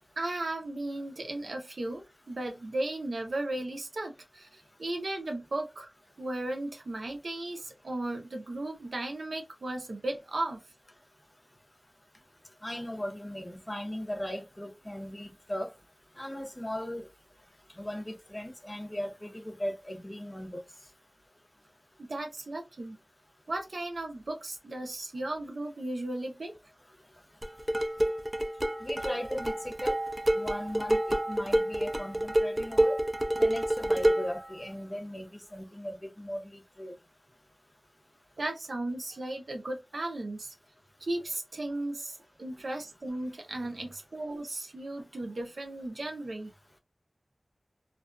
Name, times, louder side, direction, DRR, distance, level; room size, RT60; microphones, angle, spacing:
voice 1, 0.2-5.9 6.2-10.6 22.0-23.0 23.5-26.5 38.4-40.5 41.0-46.5, right 2 dB, 80° right, 0.6 m, -35 dB
voice 2, 12.6-15.7 16.2-17.0 17.8-20.6 28.8-30.0 30.3-33.0 33.4-36.9, equal, 25° left, 0.6 m, -38 dB
sound 1, 27.4-34.4, right 1 dB, 25° right, 0.4 m, -28 dB
2.4 x 2.2 x 2.3 m
wide cardioid pair, 45°, 0 cm